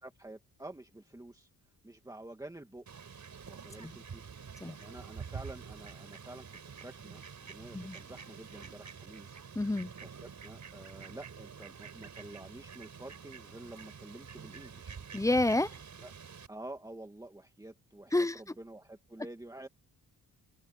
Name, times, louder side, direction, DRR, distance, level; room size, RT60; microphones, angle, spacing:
voice 1, 0.0-1.5 1.8-2.9 3.5-4.2 4.6-9.4 10.0-15.0 16.0-16.1 16.5-19.7, right 1 dB, 10° right, 2.2 m, -49 dB
Fowl, 2.9-16.5, right 6 dB, 50° right, 5.1 m, -48 dB
voice 2, 9.5-9.9 15.1-15.8 18.1-18.4, left 2 dB, 10° left, 0.7 m, -29 dB
cardioid pair, 110°, 37 cm